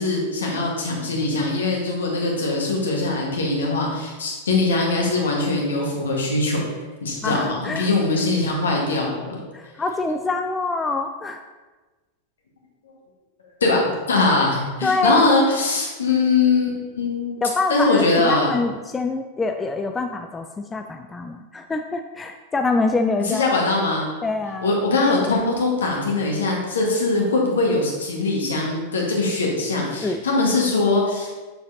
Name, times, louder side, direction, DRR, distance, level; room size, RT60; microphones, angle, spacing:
voice 1, 0.0-6.6 7.0-9.4 13.6-17.4 17.7-18.5 23.3-24.1 24.6-31.3, left 3 dB, 65° left, -1 dB, 1.5 m, -21 dB
voice 2, 7.2-7.9 9.5-11.4 14.8-15.4 17.4-23.5 24.2-24.8 30.0-30.2, left 3 dB, 15° left, 5 dB, 0.3 m, -25 dB
6.8 x 6.5 x 2.8 m, 1.2 s
figure-of-eight pair, 90°, 0 cm